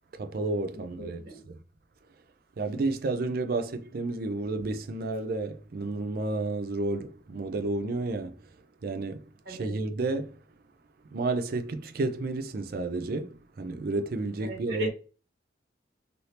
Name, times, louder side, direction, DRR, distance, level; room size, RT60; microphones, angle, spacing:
voice 1, 0.2-1.5 2.6-8.4 8.8-10.4 11.1-14.9, right 3 dB, 55° right, 0.4 m, -31 dB
voice 2, 0.7-1.4 9.4-9.7 14.4-14.9, equal, 80° right, 1.4 m, -38 dB
3.2 x 2.7 x 2.8 m
head